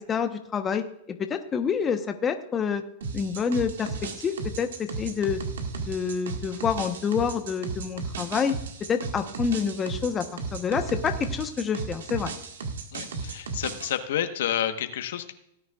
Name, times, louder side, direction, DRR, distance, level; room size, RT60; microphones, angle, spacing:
voice 1, 0.0-2.8 3.1-5.4 5.8-8.5 8.9-12.3, left 6 dB, 20° left, 7 dB, 1.0 m, -28 dB
sound 1, 3.0-14.0, right 4 dB, 85° right, 1.7 m, -35 dB
voice 2, 12.9-15.3, left 10 dB, 75° left, 8 dB, 1.1 m, -30 dB
17.5 x 9.5 x 2.4 m, 0.79 s
hypercardioid pair, 125°, 0 cm